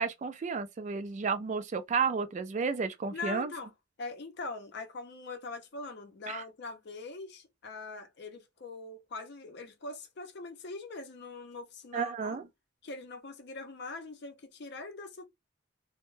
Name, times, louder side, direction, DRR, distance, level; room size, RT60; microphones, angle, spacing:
voice 1, 0.0-3.5 6.3-6.4 11.9-12.4, right 5 dB, 35° right, 0.3 m, -32 dB
voice 2, 3.1-3.7 4.0-12.4 12.8-15.2, left 3 dB, 55° left, 0.5 m, -42 dB
2.2 x 2.1 x 3.0 m
head